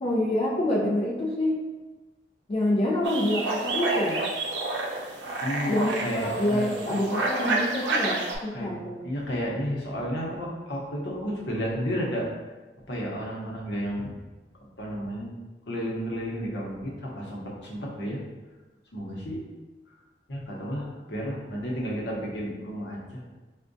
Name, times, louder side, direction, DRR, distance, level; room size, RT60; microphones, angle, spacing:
voice 1, 0.0-1.6 2.5-4.2 5.7-9.0, left 1 dB, 35° left, -4 dB, 0.4 m, -26 dB
sound 1, 3.0-8.4, right 2 dB, 85° right, 0.5 m, -29 dB
voice 2, 5.4-7.0 8.5-8.7 9.0-12.3 12.9-14.1 14.8-15.3 15.7-18.2 18.9-19.4 20.3-23.2, equal, 75° left, -3 dB, 0.8 m, -32 dB
4.4 x 2.2 x 2.6 m, 1.2 s
head